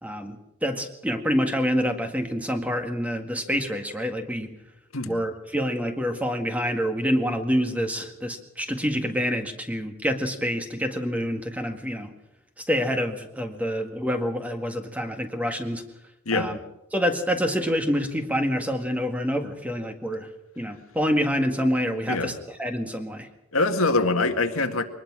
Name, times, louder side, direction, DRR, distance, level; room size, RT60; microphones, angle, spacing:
voice 1, 0.0-4.5 5.1-12.1 12.6-15.8 16.3-16.6 16.9-20.3 20.6-23.3, equal, 5° right, 5 dB, 1.8 m, -27 dB
voice 2, 23.5-24.8, left 3 dB, 80° left, 6 dB, 1.9 m, -24 dB
23.5 x 19.5 x 6.2 m, 0.83 s
head